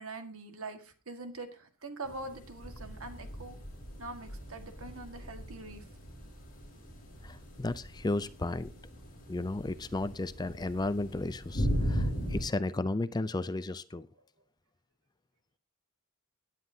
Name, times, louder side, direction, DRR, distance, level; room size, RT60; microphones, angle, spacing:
voice 1, 0.0-3.6 4.0-5.8, right 3 dB, 70° right, 7 dB, 1.7 m, -43 dB
sound 1, 2.0-12.4, equal, 40° left, 6.6 m, -38 dB
voice 2, 7.2-8.7 9.3-14.1, left 2 dB, 20° left, 14 dB, 0.4 m, -34 dB
17.5 x 9.3 x 2.8 m, 0.36 s
head